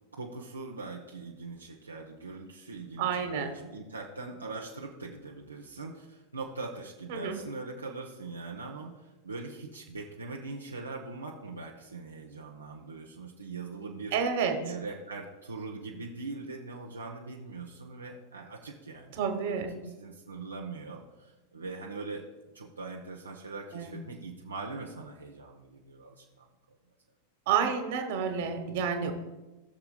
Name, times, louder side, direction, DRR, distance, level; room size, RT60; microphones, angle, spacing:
voice 1, 0.1-14.2 14.6-19.2 19.7-22.2 22.5-26.5, right 3 dB, 80° right, -1 dB, 0.9 m, -41 dB
voice 2, 3.0-3.6 7.1-7.4 14.1-14.6 19.1-19.7 23.7-24.0 27.5-29.1, right 7 dB, 50° right, 5 dB, 1.4 m, -29 dB
17.5 x 6.9 x 2.3 m, 1.1 s
figure-of-eight pair, 90°, 0 cm